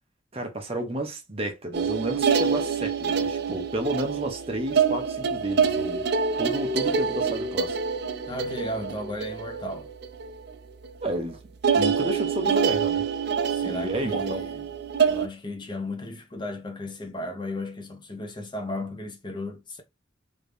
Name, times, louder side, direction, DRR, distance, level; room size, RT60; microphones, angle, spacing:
voice 1, 0.3-6.0 6.4-7.8 11.0-11.4 11.7-13.0 13.6-14.4, right 1 dB, 30° right, 0.9 m, -31 dB
sound 1, 1.7-10.5 10.8-11.2 11.6-15.3, right 6 dB, 60° right, 0.5 m, -26 dB
voice 2, 8.3-9.9 13.5-14.7 15.0-19.8, left 1 dB, 25° left, 0.6 m, -35 dB
3.2 x 2.7 x 3.4 m
head